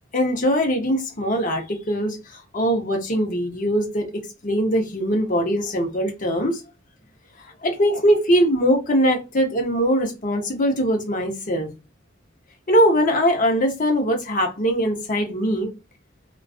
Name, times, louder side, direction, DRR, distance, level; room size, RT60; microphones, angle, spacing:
voice 1, 0.1-2.2 2.5-6.6 7.6-11.7 12.7-15.7, equal, 45° left, 0.8 m, -21 dB
2.4 x 2.3 x 2.4 m
head